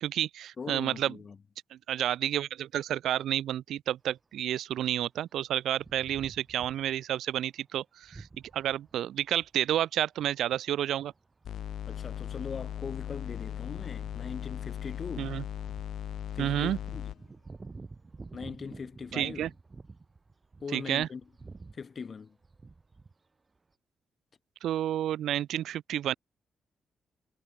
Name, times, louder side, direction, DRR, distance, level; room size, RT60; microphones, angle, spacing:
voice 1, 0.0-1.2 1.7-8.3 8.5-11.1 15.2-15.4 16.4-16.8 19.1-19.5 20.7-21.1 24.6-26.1, right 11 dB, 85° right, 1.1 m, -30 dB
voice 2, 0.6-1.4 11.9-15.4 16.3-17.1 18.3-19.5 20.6-21.2 21.7-22.4, left 5 dB, 30° left, 4.6 m, -40 dB
sound 1, 5.8-7.1 8.0-9.7 10.3-10.6 11.0-20.7 21.0-21.8 22.4-23.1, right 3 dB, 20° right, 4.3 m, -50 dB
sound 2, 11.4-17.2, left 10 dB, 65° left, 6.8 m, -38 dB
wide cardioid pair, 170°, 0 cm